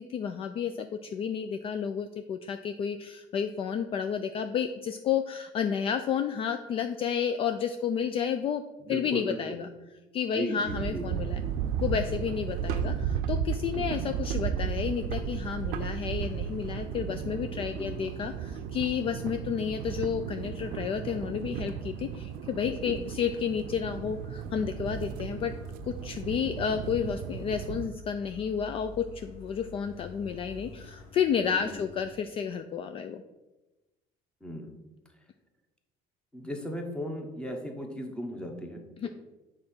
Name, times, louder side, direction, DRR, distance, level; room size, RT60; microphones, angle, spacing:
voice 1, 0.0-8.6 8.9-9.7 10.1-11.4 11.8-25.5 25.8-33.2 39.0-39.1, left 7 dB, 40° left, 8 dB, 0.3 m, -31 dB
voice 2, 8.8-9.6 10.3-11.1 13.6-13.8 17.5-18.1 22.8-23.0 31.5-31.8 34.4-34.7 36.3-39.1, equal, 5° left, 3 dB, 1.0 m, -37 dB
sound 1, 10.7-27.9, right 8 dB, 90° right, 0.5 m, -34 dB
sound 2, 23.8-32.1, left 2 dB, 80° left, 1.7 m, -49 dB
7.5 x 3.8 x 6.1 m, 1.1 s
cardioid pair, 150°, 15 cm